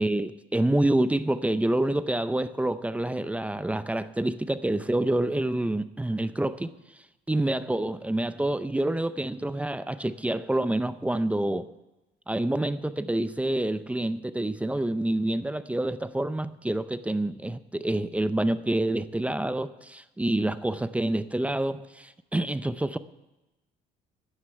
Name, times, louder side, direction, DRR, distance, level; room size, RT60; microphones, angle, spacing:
voice 1, 0.0-6.7 7.3-11.7 12.3-23.0, right 1 dB, 10° right, 13 dB, 0.5 m, -27 dB
11.0 x 9.6 x 7.7 m, 0.99 s
cardioid pair, 110°, 17 cm